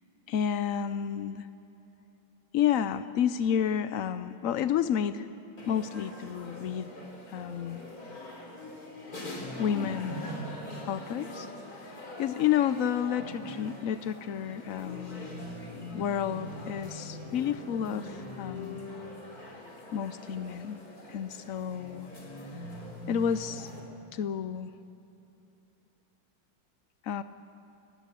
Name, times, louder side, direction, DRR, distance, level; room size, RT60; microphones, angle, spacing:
voice 1, 0.3-1.5 2.5-5.3 5.7-6.9 7.3-7.8 9.6-10.3 10.9-11.5 11.8-15.3 15.9-18.9 19.9-20.8 21.1-22.1 23.1-23.7 24.1-24.7 27.0-27.2, left 9 dB, 80° left, 12 dB, 0.7 m, -30 dB
sound 1, 5.6-23.8, left 1 dB, 45° left, 4.2 m, -42 dB
29.5 x 16.0 x 8.2 m, 3.0 s
omnidirectional pair, 2.2 m